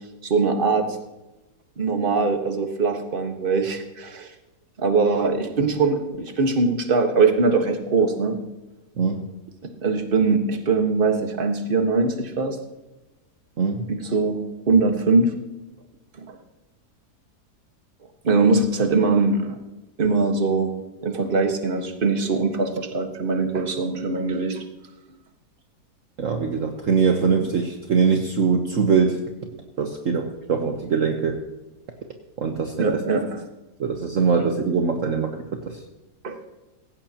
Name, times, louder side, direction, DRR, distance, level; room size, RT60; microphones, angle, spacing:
voice 1, 0.2-0.8 1.8-4.3 4.8-8.4 9.6-12.6 13.9-15.3 16.3-16.4 18.2-19.5 20.0-20.7 21.0-24.6 32.8-33.4 36.2-36.4, right 4 dB, 35° right, 5 dB, 1.6 m, -22 dB
voice 2, 26.2-29.2 29.8-31.4 32.4-32.9 33.8-35.8, right 5 dB, 55° right, 3 dB, 1.4 m, -22 dB
17.0 x 16.0 x 2.9 m, 1.0 s
omnidirectional pair, 1.8 m